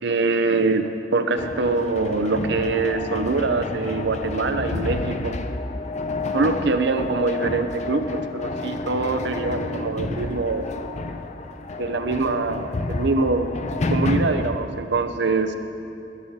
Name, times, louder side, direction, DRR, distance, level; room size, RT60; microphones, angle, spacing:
voice 1, 0.0-5.4 6.3-10.7 11.8-13.5 13.9-15.5, right 3 dB, 65° right, 8 dB, 0.6 m, -24 dB
sound 1, 1.4-14.5, left 2 dB, 40° left, 0.5 m, -29 dB
12.5 x 12.5 x 2.8 m, 2.7 s
head